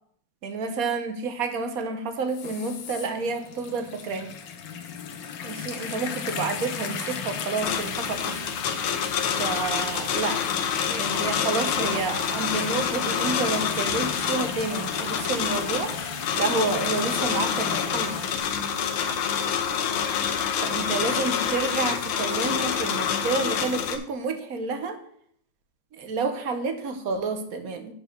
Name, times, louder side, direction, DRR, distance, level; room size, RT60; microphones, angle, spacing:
voice 1, 0.4-4.3 5.4-8.5 9.4-10.4 10.9-18.3 20.6-25.0 25.9-27.9, right 4 dB, 55° right, 8 dB, 1.1 m, -29 dB
sound 1, 2.3-18.4, left 7 dB, 65° left, 1.5 m, -35 dB
sound 2, 7.6-24.0, left 7 dB, 90° left, 1.7 m, -27 dB
7.8 x 4.7 x 6.5 m, 0.65 s
omnidirectional pair, 2.3 m